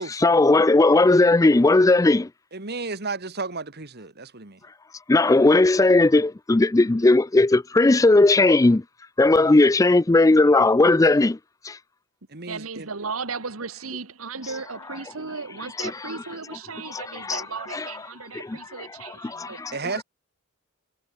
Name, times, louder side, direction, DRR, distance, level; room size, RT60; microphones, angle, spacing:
voice 1, 0.1-2.3 5.1-8.8 9.2-11.4 11.6-11.8 15.8-16.1 16.8-17.4 17.7-17.9 18.3-19.8, left 2 dB, 15° left, 0.4 m, -18 dB
voice 2, 2.5-4.6 12.3-12.9 19.7-20.0, right 3 dB, 45° right, 2.2 m, -33 dB
voice 3, 12.5-19.6, right 4 dB, 70° right, 1.6 m, -35 dB
head